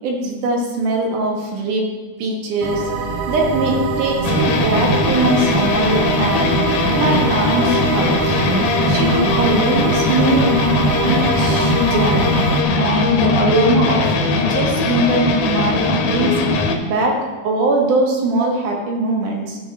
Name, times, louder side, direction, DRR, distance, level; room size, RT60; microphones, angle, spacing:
voice 1, 0.0-2.9 3.3-6.5 7.0-8.4 8.9-10.5 11.0-12.3 12.8-16.4 16.8-19.6, right 2 dB, 90° right, 0 dB, 3.0 m, -21 dB
sound 1, 2.6-12.6, right 4 dB, 70° right, 1.4 m, -23 dB
sound 2, 4.2-16.8, left 3 dB, 90° left, 2.5 m, -19 dB
12.0 x 6.3 x 4.3 m, 1.3 s
omnidirectional pair, 3.5 m